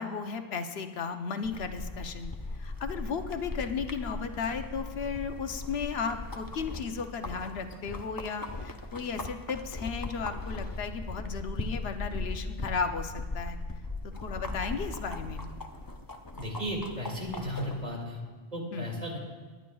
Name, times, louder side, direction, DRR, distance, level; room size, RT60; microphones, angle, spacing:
voice 1, 0.0-2.3 2.6-13.6 14.2-15.4 18.7-18.9, left 5 dB, 80° left, 7 dB, 1.0 m, -35 dB
sound 1, 1.4-17.9, left 2 dB, 25° left, 0.6 m, -39 dB
voice 2, 16.4-18.2 18.5-19.2, equal, 45° right, -1 dB, 2.2 m, -35 dB
22.0 x 10.5 x 2.3 m, 1.5 s
omnidirectional pair, 1.0 m